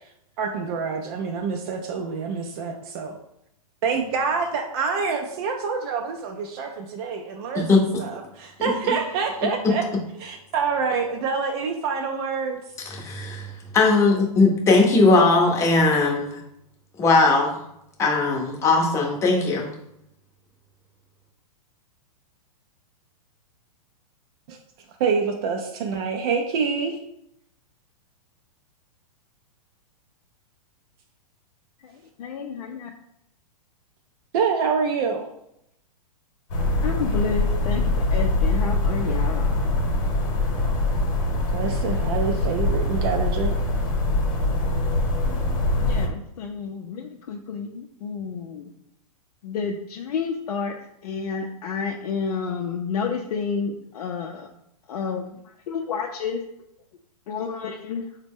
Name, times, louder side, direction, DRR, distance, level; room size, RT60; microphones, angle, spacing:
voice 1, 0.4-3.1 3.8-7.7 8.0-9.9 10.2-12.6 24.5-24.6 25.0-27.0 34.3-35.3 41.5-43.5, right 5 dB, 40° right, 3 dB, 0.4 m, -26 dB
voice 2, 12.9-13.5 13.7-16.4 17.0-17.5 18.0-19.7, left 3 dB, 15° left, -1 dB, 0.7 m, -19 dB
voice 3, 31.8-32.9 36.8-39.7 45.8-48.7 49.4-50.7 51.0-54.5 54.9-55.2 55.7-56.4 57.3-58.0, left 5 dB, 75° left, 1 dB, 0.5 m, -30 dB
sound 1, 36.5-46.1, left 2 dB, 55° left, 1.0 m, -23 dB
3.9 x 2.1 x 3.5 m, 0.79 s
hypercardioid pair, 150°, 19 cm